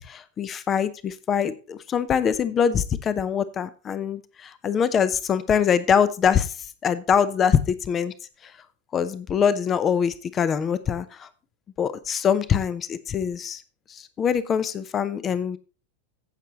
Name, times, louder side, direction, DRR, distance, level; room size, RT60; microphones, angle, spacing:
voice 1, 0.1-8.1 8.4-8.5 8.9-11.3 11.8-13.6 13.9-15.6, left 7 dB, 25° left, 15 dB, 0.7 m, -24 dB
15.0 x 6.8 x 3.0 m, 0.34 s
figure-of-eight pair, 90°, 0 cm